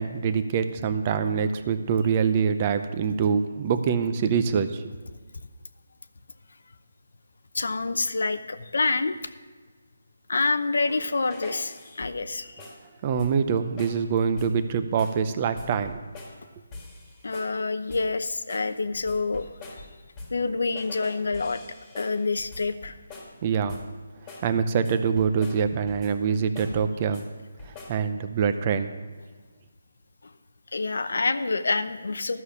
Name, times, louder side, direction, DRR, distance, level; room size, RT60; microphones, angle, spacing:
voice 1, 0.0-4.8 13.0-16.0 23.4-23.8 24.4-27.2 27.7-28.9, right 6 dB, 25° right, 10 dB, 0.6 m, -25 dB
voice 2, 7.5-9.2 10.3-12.7 17.2-19.9 20.3-21.6 22.0-23.0 30.2-30.3 30.7-32.4, left 3 dB, 75° left, 11 dB, 0.7 m, -27 dB
sound 1, 10.9-12.3 12.6-12.9 13.2-13.5 13.8-14.1 14.4-14.6 15.0-15.3 15.6-16.4 16.7-17.6 17.9-18.2 18.5-20.5 20.8-23.4 23.7-24.0 24.3-24.5 24.8-26.2 26.6-27.3 27.6-28.1, left 2 dB, 15° left, 1.7 m, -44 dB
12.5 x 6.5 x 7.2 m, 1.4 s
hypercardioid pair, 165°, 0 cm